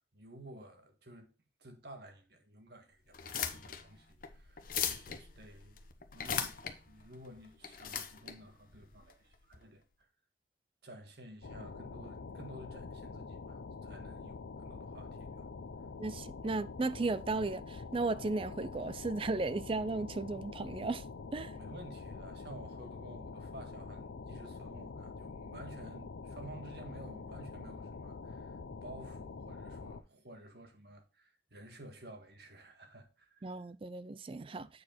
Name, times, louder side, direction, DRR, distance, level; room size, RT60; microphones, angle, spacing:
voice 1, 0.1-1.3 1.6-5.8 6.1-9.8 10.8-15.5 21.5-33.5 34.6-34.7, right 1 dB, 60° right, 1.8 m, -53 dB
sound 1, 3.1-9.6, left 8 dB, 50° left, 1.0 m, -40 dB
sound 2, 11.4-30.0, left 4 dB, 90° left, 0.6 m, -46 dB
voice 2, 16.0-21.0 21.3-21.5 33.4-34.7, right 3 dB, 30° right, 0.4 m, -35 dB
8.3 x 4.8 x 4.3 m
head